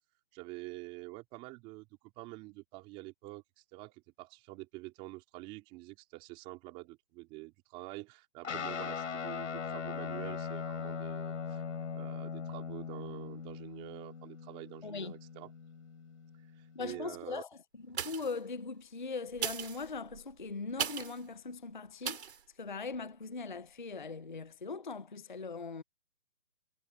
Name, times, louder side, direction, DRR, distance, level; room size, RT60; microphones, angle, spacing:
voice 1, 0.3-11.7 11.9-15.5 16.6-17.4, right 21 dB, 15° right, 3.8 m, -47 dB
Guitar, 8.4-17.2, left 6 dB, 60° left, 3.5 m, -40 dB
voice 2, 14.8-15.2 16.8-17.5 17.9-22.2 22.6-25.8, left 4 dB, 35° left, 0.5 m, -40 dB
sound 1, 17.9-18.5 19.3-21.2 22.0-22.4 22.9-23.0, right 8 dB, 50° right, 3.8 m, -38 dB
hypercardioid pair, 175°, 42 cm